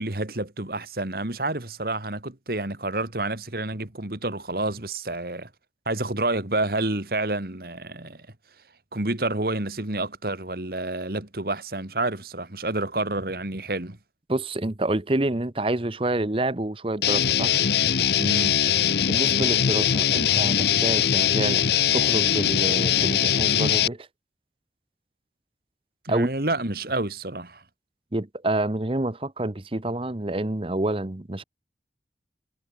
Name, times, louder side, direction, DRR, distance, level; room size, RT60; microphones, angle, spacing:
voice 1, 0.0-5.5 5.9-8.3 8.9-14.0 18.2-18.7 26.0-27.6, right 2 dB, 55° right, 2.3 m, -29 dB
voice 2, 14.3-17.5 19.1-21.6 21.9-24.1 26.1-26.3 28.1-31.4, right 1 dB, 30° right, 0.9 m, -27 dB
Guitar, 17.0-23.9, left 9 dB, 65° left, 0.7 m, -21 dB
head